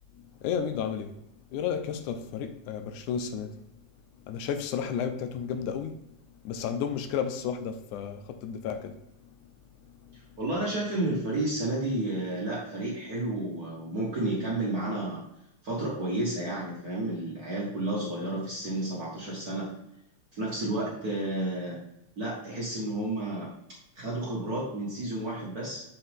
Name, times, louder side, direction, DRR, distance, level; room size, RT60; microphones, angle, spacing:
voice 1, 0.1-1.1 1.5-3.6 4.2-6.1 6.4-9.1 9.4-9.5 9.8-10.2, left 7 dB, 85° left, 8 dB, 2.2 m, -33 dB
voice 2, 10.4-15.2 15.6-19.7 20.3-21.8 22.2-23.5 23.9-25.8, right 1 dB, 40° right, -5 dB, 1.5 m, -31 dB
6.2 x 5.8 x 3.5 m, 0.82 s
omnidirectional pair, 3.4 m